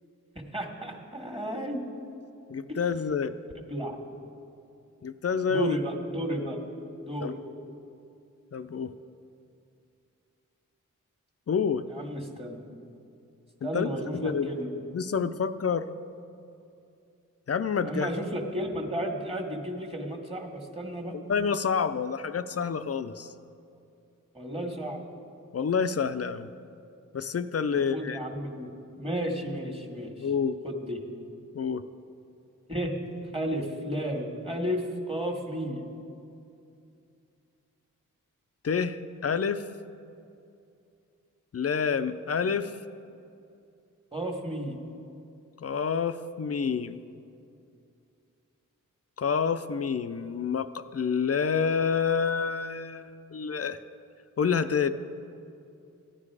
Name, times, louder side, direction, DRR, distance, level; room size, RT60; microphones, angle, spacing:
voice 1, 0.4-1.8 2.7-2.8 3.5-4.0 5.5-6.6 7.0-7.3 11.9-12.6 13.6-14.7 17.8-21.1 24.3-25.0 27.7-28.7 29.0-30.3 30.6-31.0 32.7-33.0 33.3-35.8 44.1-44.8, equal, 20° right, 3 dB, 1.8 m, -33 dB
voice 2, 2.5-3.3 5.0-5.8 7.2-7.3 8.5-8.9 11.5-11.9 13.6-14.5 14.9-15.9 17.5-18.1 21.1-23.3 25.5-26.5 27.1-28.2 30.2-30.6 31.5-31.8 38.6-39.6 41.5-42.7 45.6-47.0 49.2-53.8 54.4-54.9, left 6 dB, 50° left, 11 dB, 0.6 m, -28 dB
15.0 x 9.9 x 4.8 m, 2.6 s
cardioid pair, 50°, 32 cm